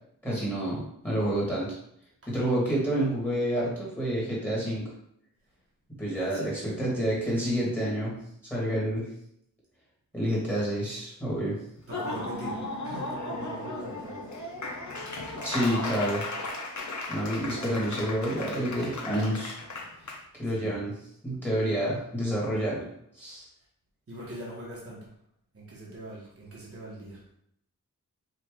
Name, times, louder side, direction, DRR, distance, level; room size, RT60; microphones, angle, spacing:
voice 1, 0.2-1.8 2.3-4.9 6.0-8.1 8.5-9.1 10.1-11.6 15.4-16.3 17.1-19.6 20.3-21.0 21.2-22.9 23.2-23.5, right 1 dB, 5° left, -5 dB, 1.6 m, -28 dB
voice 2, 6.1-6.8 11.9-14.2 20.5-20.7 24.1-25.1 25.5-27.2, right 1 dB, 40° right, -5 dB, 1.2 m, -41 dB
Laughter / Applause, 11.8-20.2, left 2 dB, 55° left, 0.8 m, -36 dB
5.0 x 2.6 x 3.6 m, 0.72 s
wide cardioid pair, 100°, 34 cm